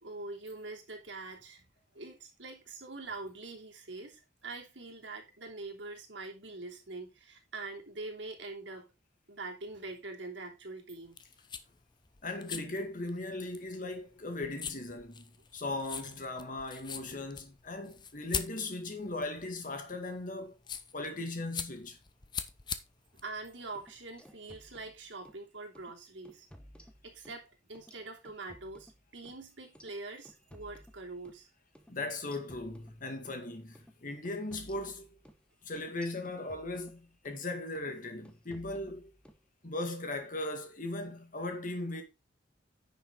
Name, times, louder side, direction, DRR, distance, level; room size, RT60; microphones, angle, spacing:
voice 1, 0.0-1.6 1.9-8.9 9.3-11.2 23.1-26.5 27.0-31.5, right 3 dB, 75° right, 3.1 m, -44 dB
sound 1, 11.0-24.2, left 6 dB, 25° left, 0.7 m, -43 dB
voice 2, 12.2-20.5 20.9-22.0 31.9-35.1 35.6-39.1 39.6-42.0, left 2 dB, 45° left, 2.0 m, -38 dB
sound 2, 23.6-25.4 25.8-25.9 26.3-27.4 27.8-31.4 31.8-31.9 32.3-33.4 33.8-33.9 34.3-37.4 37.8-38.0 38.3-39.4, equal, 5° left, 1.1 m, -57 dB
10.0 x 6.5 x 3.8 m
head